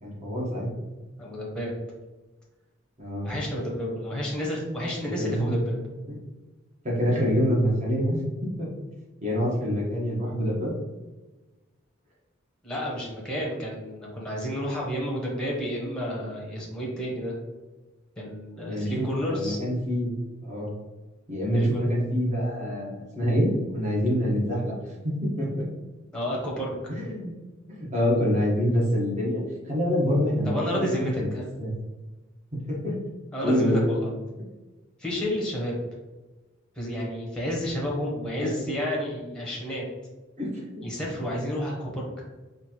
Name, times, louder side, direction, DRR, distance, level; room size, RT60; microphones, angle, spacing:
voice 1, 0.0-0.7 3.0-3.3 5.2-5.6 6.1-6.2 6.8-8.7 9.2-10.7 18.7-20.1 20.4-20.7 21.3-24.7 25.0-25.6 26.9-27.3 27.7-29.4 29.7-31.3 31.6-31.7 32.7-33.0 33.4-33.8 38.4-38.5 40.4-40.9, equal, 35° right, -4 dB, 1.2 m, -26 dB
voice 2, 1.2-1.8 3.2-5.8 12.6-17.3 18.2-19.6 21.5-21.9 26.1-26.7 30.5-31.5 33.3-34.1 35.0-35.8 36.7-39.8 40.8-42.0, equal, 5° left, -4 dB, 0.9 m, -30 dB
4.3 x 2.6 x 3.0 m, 1.2 s
head